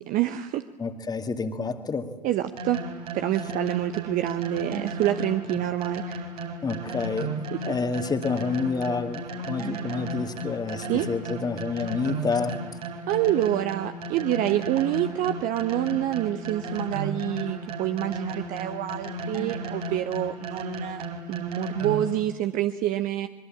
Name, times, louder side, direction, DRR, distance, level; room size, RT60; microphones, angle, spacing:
voice 1, 0.0-0.6 2.2-2.8 3.1-6.2 7.5-7.6 10.9-11.1 13.1-21.0 21.3-23.3, right 13 dB, 40° right, 9 dB, 1.0 m, -27 dB
voice 2, 0.8-2.1 6.6-7.3 7.6-12.6, left 4 dB, 20° left, 8 dB, 2.2 m, -28 dB
sound 1, 2.6-22.2, right 1 dB, 70° right, 4.0 m, -34 dB
25.0 x 22.5 x 8.8 m, 1.3 s
figure-of-eight pair, 80°, 21 cm